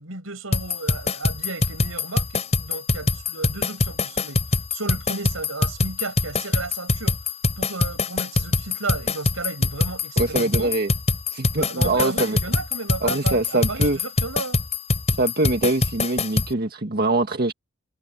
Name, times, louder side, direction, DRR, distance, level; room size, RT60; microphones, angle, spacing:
voice 1, 0.0-4.4 4.7-7.2 7.6-10.7 11.5-14.6, right 3 dB, 80° right, 6.3 m, -33 dB
sound 1, 0.5-16.5, left 2 dB, 35° left, 4.4 m, -23 dB
voice 2, 10.2-10.9 11.3-12.4 13.0-14.0 15.2-17.5, right 2 dB, 50° right, 1.7 m, -23 dB
head